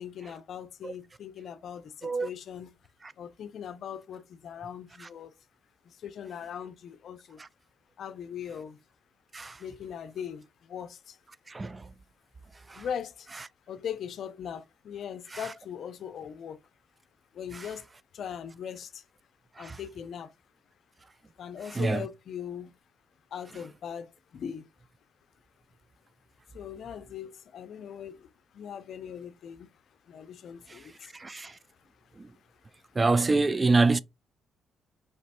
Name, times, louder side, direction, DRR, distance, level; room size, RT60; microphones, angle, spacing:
voice 1, 0.0-2.7 3.2-5.3 5.8-7.4 8.0-8.8 9.6-11.2 12.7-13.3 13.7-16.6 17.3-17.9 18.1-19.1 19.6-20.3 21.4-22.8 23.3-24.7 26.5-33.0, left 8 dB, 65° left, 0.5 m, -40 dB
voice 2, 11.5-11.9 12.7-12.8 15.3-15.4 17.5-17.7 19.6-19.8 21.7-22.0 30.7-31.6 32.2-32.3 33.0-34.0, right 3 dB, 25° right, 0.3 m, -27 dB
4.8 x 3.1 x 2.8 m
cardioid pair, 90°, 0 cm